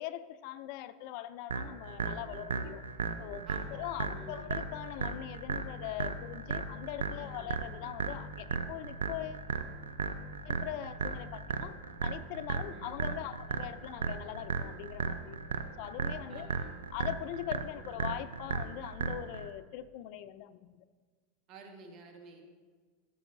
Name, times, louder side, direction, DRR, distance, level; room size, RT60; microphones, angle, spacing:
voice 1, 0.0-2.8 3.2-9.5 10.4-11.8 12.0-16.5 16.9-20.8, left 13 dB, 60° left, 15 dB, 0.4 m, -41 dB
sound 1, 1.5-19.5, right 5 dB, 90° right, 0.5 m, -36 dB
voice 2, 3.4-4.6 7.1-7.6 12.7-13.0 16.3-16.7 17.7-18.0 21.5-22.5, right 3 dB, 50° right, 4 dB, 1.3 m, -52 dB
11.5 x 7.1 x 2.6 m, 1.5 s
hypercardioid pair, 100°, 0 cm